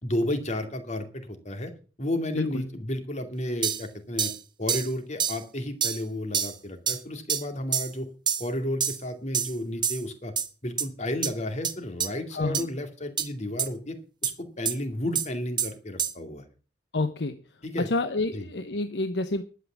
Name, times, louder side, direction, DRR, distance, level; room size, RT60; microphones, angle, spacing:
voice 1, 0.0-1.7 2.0-4.3 4.6-8.1 8.4-10.3 10.6-14.0 14.2-16.4 17.6-17.9 18.3-18.4, left 1 dB, 40° left, 7 dB, 2.4 m, -32 dB
sound 1, 3.6-3.8 4.2-4.4 4.7-4.9 5.2-5.4 5.8-6.0 6.3-6.5 6.9-7.0 7.3-7.4 7.7-7.9 8.3-8.5 8.8-9.0 9.3-9.5 9.8-10.0 10.4-10.5 10.8-10.9 11.2-11.3 11.6-11.7 12.0-12.1 12.5-12.6 13.2-13.3 13.6-13.7 14.2-14.3 14.7-14.8 15.2-15.3 15.6-15.7 16.0-16.1, right 7 dB, 25° right, 1.1 m, -27 dB
voice 2, 12.3-12.7 16.9-17.4 17.8-19.4, left 2 dB, 70° left, 10 dB, 0.9 m, -28 dB
11.5 x 8.6 x 7.3 m, 0.36 s
head